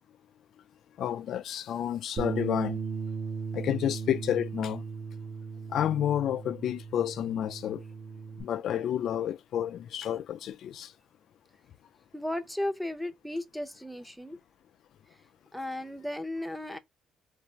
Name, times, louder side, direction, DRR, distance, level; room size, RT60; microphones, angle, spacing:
voice 1, 1.0-2.8 3.5-4.8 5.7-7.8 8.4-10.9, left 10 dB, 65° left, 0.3 m, -30 dB
Bass guitar, 2.2-8.4, right 5 dB, 40° right, 1.6 m, -37 dB
voice 2, 12.1-14.4 15.5-16.8, left 1 dB, ahead, 0.7 m, -35 dB
4.0 x 2.5 x 4.5 m
cardioid pair, 115°, 0 cm